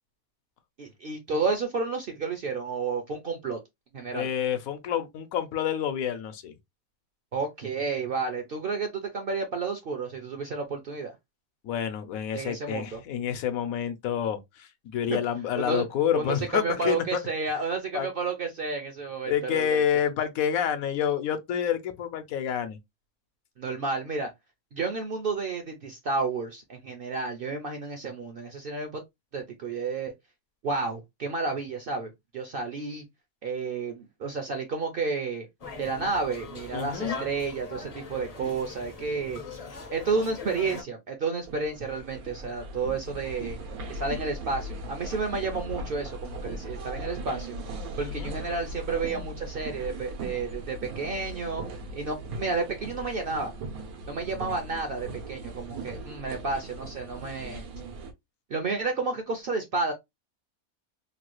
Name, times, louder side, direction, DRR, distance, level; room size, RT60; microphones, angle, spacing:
voice 1, 0.8-3.6 3.9-4.3 7.3-11.1 12.3-13.0 15.1-15.2 15.6-15.8 16.1-19.8 23.6-24.3 24.7-29.0 29.3-30.1 30.6-33.0 33.4-35.5 35.8-39.4 39.9-43.6 43.9-47.6 48.0-51.6 51.9-53.5 54.1-57.6 58.5-59.9, right 4 dB, 60° right, 0.6 m, -31 dB
voice 2, 4.1-6.5 11.6-17.2 17.9-18.1 19.3-22.8 36.7-37.2 48.0-48.3, left 9 dB, 80° left, 1.1 m, -28 dB
sound 1, 35.6-40.8, left 3 dB, 45° left, 0.5 m, -40 dB
sound 2, 41.4-58.1, right 1 dB, 90° right, 1.2 m, -39 dB
3.1 x 2.2 x 3.0 m
omnidirectional pair, 1.5 m